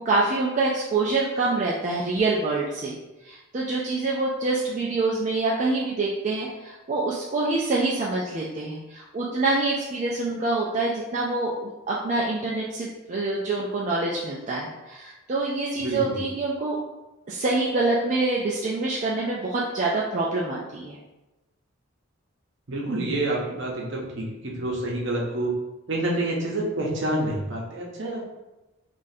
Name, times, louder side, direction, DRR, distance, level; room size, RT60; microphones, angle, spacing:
voice 1, 0.1-2.9 3.2-16.8 17.3-21.0, right 3 dB, 35° right, -5 dB, 0.3 m, -26 dB
voice 2, 15.8-16.2 22.7-25.5 25.9-28.2, right 1 dB, 60° right, -2 dB, 0.8 m, -28 dB
3.9 x 2.4 x 2.6 m, 1.0 s
head